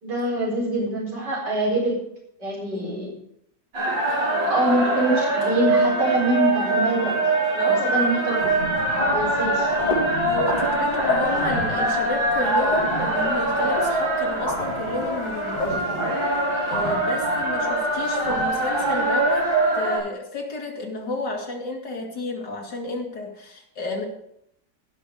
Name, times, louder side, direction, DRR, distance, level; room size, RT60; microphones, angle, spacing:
voice 1, 0.0-2.0 2.4-3.1 4.5-8.4 9.1-9.7, right 1 dB, 70° right, -4 dB, 5.0 m, -24 dB
sound 1, 3.7-20.0, right 2 dB, 85° right, 5.2 m, -23 dB
voice 2, 7.6-8.2 10.3-15.9 16.7-19.5 19.7-24.1, left 2 dB, 70° left, -1 dB, 3.2 m, -30 dB
sound 2, 8.4-19.5, left 1 dB, 25° left, 3.5 m, -31 dB
16.0 x 6.7 x 5.0 m, 0.74 s
omnidirectional pair, 1.9 m